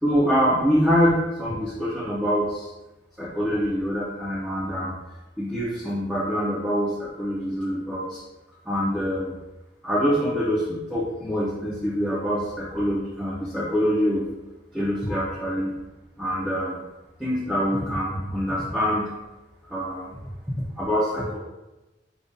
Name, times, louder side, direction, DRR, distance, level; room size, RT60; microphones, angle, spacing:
voice 1, 0.0-2.7 3.2-4.9 5.4-8.2 8.6-9.3 9.8-14.3 14.7-15.7 16.2-16.8 17.2-19.1 19.7-20.1 20.8-21.4, equal, 5° right, -9 dB, 0.6 m, -25 dB
5.1 x 2.4 x 2.6 m, 1.0 s
head